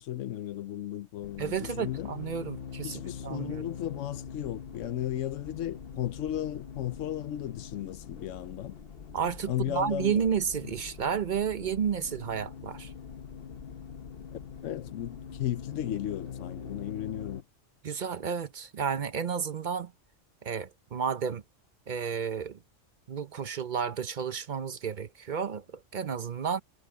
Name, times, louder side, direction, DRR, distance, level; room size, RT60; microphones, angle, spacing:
voice 1, 0.0-2.1 2.8-8.7 9.5-10.3 14.6-17.4, left 12 dB, 80° left, 1.0 m, -35 dB
sound 1, 1.2-17.4, left 7 dB, 50° left, 1.2 m, -43 dB
voice 2, 1.4-3.7 9.1-12.9 17.8-19.9 20.4-21.4 21.9-22.6 23.1-26.6, right 7 dB, 45° right, 0.8 m, -31 dB
omnidirectional pair, 1.3 m